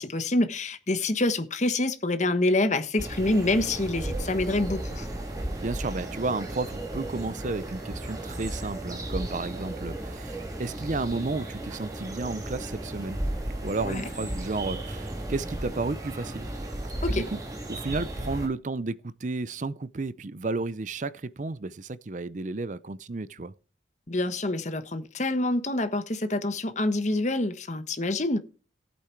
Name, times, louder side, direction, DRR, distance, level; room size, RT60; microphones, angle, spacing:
voice 1, 0.0-5.1 13.8-14.0 17.0-17.3 24.1-28.4, left 2 dB, 40° left, 1.1 m, -26 dB
sound 1, 3.0-18.5, right 1 dB, 20° right, 3.1 m, -34 dB
voice 2, 5.6-13.2 13.6-16.5 17.1-17.4 17.7-23.5, right 3 dB, 40° right, 0.5 m, -32 dB
15.0 x 8.6 x 4.5 m
head